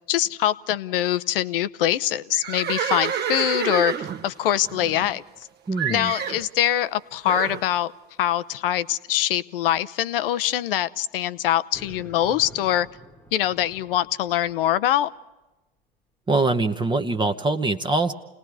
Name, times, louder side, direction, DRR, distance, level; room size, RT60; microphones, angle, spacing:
voice 1, 0.1-5.2 5.9-7.9 8.2-12.9 13.3-15.1, left 12 dB, 70° left, 15 dB, 0.8 m, -23 dB
Livestock farm animals working animals, 2.3-5.4 5.8-6.5 7.3-7.6, right 8 dB, 35° right, 1.1 m, -28 dB
voice 2, 5.7-6.1 16.3-18.1, right 3 dB, 15° right, 6 dB, 1.0 m, -23 dB
sound 1, 11.7-14.8, right 1 dB, 5° left, 1.4 m, -48 dB
29.5 x 19.0 x 4.7 m, 1.0 s
hypercardioid pair, 85°, 29 cm